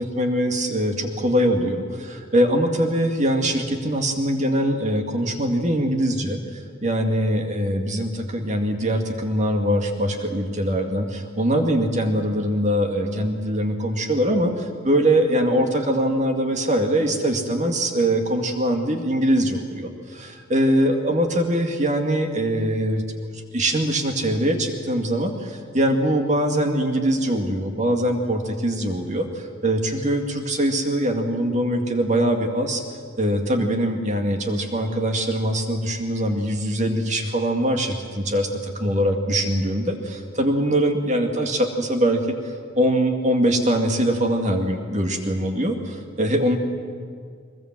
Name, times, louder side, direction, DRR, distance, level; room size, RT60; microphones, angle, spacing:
voice 1, 0.0-23.0 23.3-32.8 33.2-38.5 38.8-46.6, right 1 dB, 35° right, 4 dB, 2.1 m, -22 dB
22.5 x 21.0 x 7.6 m, 2.1 s
head